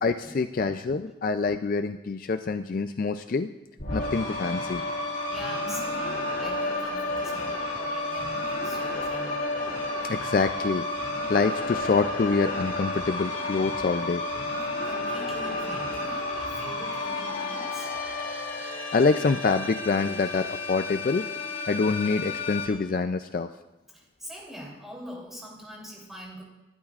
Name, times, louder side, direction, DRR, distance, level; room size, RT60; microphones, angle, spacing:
voice 1, 0.0-3.5 3.9-4.8 10.1-10.8 11.3-14.2 18.9-21.3 21.7-23.5, left 4 dB, 45° left, 9 dB, 0.3 m, -26 dB
sound 1, 3.8-22.7, left 2 dB, 75° left, 3.5 m, -31 dB
voice 2, 5.3-9.5 14.5-17.9 23.9-26.4, equal, ahead, -3 dB, 3.1 m, -43 dB
29.0 x 12.0 x 2.4 m, 1.0 s
head